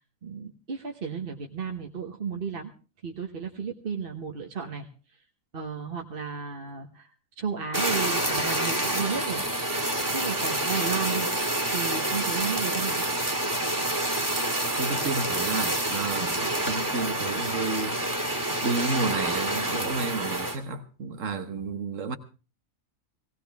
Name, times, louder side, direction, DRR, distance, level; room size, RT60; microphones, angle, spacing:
voice 1, 0.2-2.7 3.0-4.9 5.5-7.1 7.4-9.4 10.1-11.3 11.7-13.0 16.2-16.3, right 6 dB, 45° right, 1.3 m, -33 dB
Fire, 7.7-20.6, right 1 dB, 15° right, 2.1 m, -28 dB
voice 2, 14.8-18.0 18.6-22.2, right 4 dB, 70° right, 1.6 m, -31 dB
18.0 x 18.0 x 3.5 m
omnidirectional pair, 1.4 m